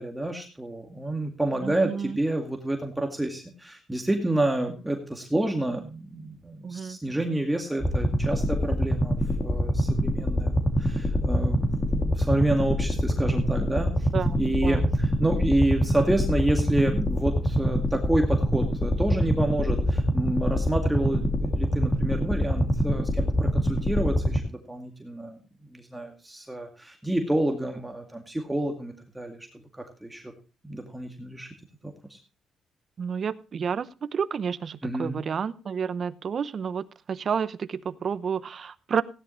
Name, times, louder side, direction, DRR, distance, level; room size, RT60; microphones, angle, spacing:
voice 1, 0.0-9.2 9.4-14.1 14.4-30.3 30.6-31.5 31.8-32.2 34.8-35.2, right 1 dB, 10° right, 3 dB, 2.1 m, -29 dB
voice 2, 1.6-2.2 6.6-7.0 14.1-14.9 33.0-39.0, right 6 dB, 50° right, 15 dB, 0.9 m, -30 dB
sound 1, 7.8-24.4, equal, 15° left, 2.7 m, -25 dB
16.5 x 11.0 x 3.2 m, 0.33 s
cardioid pair, 90°, 0 cm